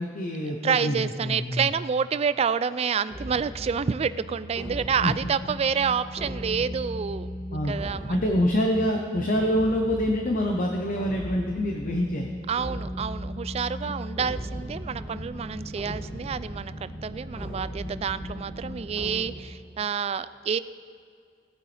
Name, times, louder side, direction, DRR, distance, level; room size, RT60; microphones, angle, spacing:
voice 1, 0.0-1.7 5.0-5.1 7.5-7.8 8.1-12.3 13.8-13.9, equal, 45° left, 2 dB, 0.9 m, -26 dB
voice 2, 0.6-7.3 7.7-8.2 12.5-20.6, right 6 dB, 35° right, 15 dB, 0.3 m, -28 dB
sound 1, 3.1-19.2, equal, 5° left, 3.1 m, -37 dB
18.0 x 9.2 x 3.4 m, 2.3 s
head